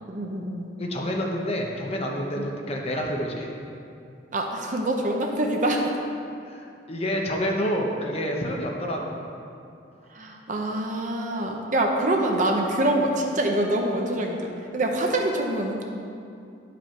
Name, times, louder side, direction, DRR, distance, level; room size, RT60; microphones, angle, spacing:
voice 1, 0.0-0.7 2.3-2.5 4.3-6.0 10.1-15.8, right 1 dB, 45° right, 1 dB, 0.8 m, -25 dB
voice 2, 0.8-3.5 6.4-9.2, equal, 35° left, 0 dB, 0.9 m, -28 dB
10.5 x 5.1 x 4.5 m, 2.5 s
head